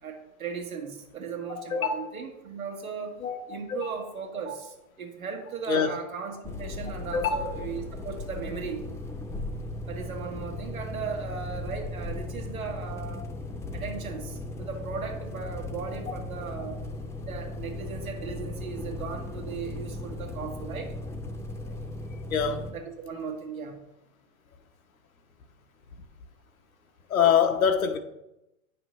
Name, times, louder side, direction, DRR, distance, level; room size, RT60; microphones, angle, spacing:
voice 1, 0.0-3.2 3.5-8.8 9.8-13.3 13.7-16.8 17.2-20.9 22.7-23.8, right 6 dB, 90° right, 1.7 m, -37 dB
voice 2, 1.6-2.0 3.2-3.9 5.7-5.9 7.1-7.4 22.3-22.7 27.1-28.0, left 7 dB, 85° left, 1.0 m, -24 dB
sound 1, 6.4-22.7, left 2 dB, 5° left, 0.6 m, -37 dB
9.2 x 5.9 x 3.1 m
hypercardioid pair, 105°, 41 cm